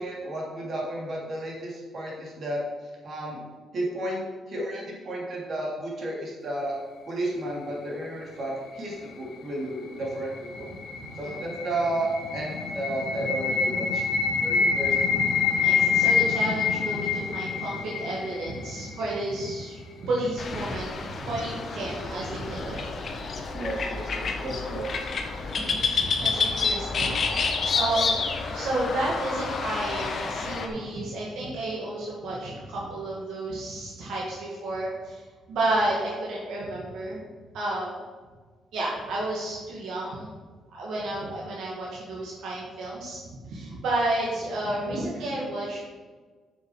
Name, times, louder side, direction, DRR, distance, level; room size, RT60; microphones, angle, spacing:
voice 1, 0.0-2.6 3.0-3.4 3.7-4.2 4.5-6.8 7.1-10.8 11.2-14.0 14.4-15.2 15.7-15.8 23.5-24.9, right 1 dB, 50° right, -3 dB, 3.2 m, -32 dB
sound 1, 10.1-19.1, left 6 dB, 70° left, 0.9 m, -26 dB
voice 2, 10.9-11.4 13.2-13.3 14.1-14.7 15.1-15.3 15.6-22.9 23.2-23.3 25.4-28.2 28.5-37.3 37.5-37.9 38.7-40.3 40.7-43.2 43.5-45.9, right 2 dB, 80° right, -5 dB, 2.1 m, -31 dB
sound 2, 20.4-30.7, left 4 dB, 50° left, 1.3 m, -29 dB
7.1 x 6.9 x 6.4 m, 1.4 s
cardioid pair, 90°, 0 cm